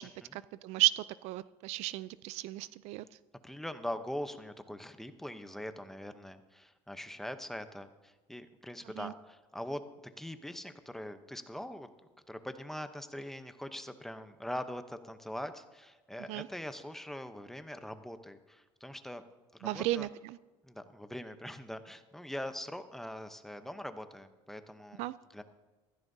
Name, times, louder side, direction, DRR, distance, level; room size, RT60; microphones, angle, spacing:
voice 1, 0.0-3.0 9.0-9.1 16.3-16.5 19.6-20.4 25.0-25.1, right 17 dB, 70° right, 17 dB, 0.4 m, -34 dB
voice 2, 3.4-9.8 10.2-11.9 12.3-19.2 19.6-20.1 20.6-25.0 25.3-25.4, left 1 dB, 5° left, 9 dB, 0.8 m, -42 dB
15.5 x 14.5 x 2.7 m, 1.2 s
cardioid pair, 120°, 12 cm